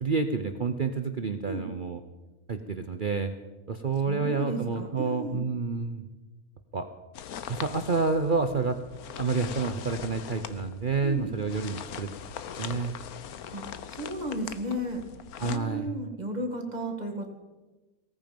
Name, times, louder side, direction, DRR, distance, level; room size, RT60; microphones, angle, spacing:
voice 1, 0.0-2.0 2.5-3.3 3.7-6.1 6.7-6.9 7.5-8.8 9.2-12.1 12.6-13.0 15.4-15.9, right 4 dB, 45° right, 7 dB, 0.8 m, -29 dB
voice 2, 4.1-5.4 11.0-11.3 13.5-13.6 13.9-15.0 15.4-17.3, equal, 30° right, 3 dB, 2.2 m, -33 dB
sound 1, 7.1-15.6, left 8 dB, 75° left, 1.3 m, -41 dB
18.0 x 14.5 x 5.3 m, 1.2 s
omnidirectional pair, 1.6 m